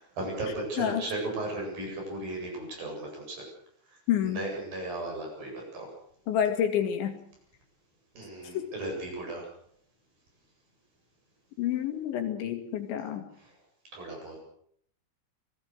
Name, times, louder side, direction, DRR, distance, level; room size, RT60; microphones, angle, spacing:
voice 1, 0.0-3.5 3.9-4.0 4.2-5.9 8.1-9.5 13.9-14.4, right 2 dB, 50° right, 1 dB, 9.8 m, -36 dB
voice 2, 4.1-4.4 6.3-7.2 8.5-8.7 11.6-13.3, left 9 dB, 75° left, 5 dB, 4.7 m, -28 dB
27.5 x 20.0 x 6.6 m, 0.67 s
omnidirectional pair, 5.4 m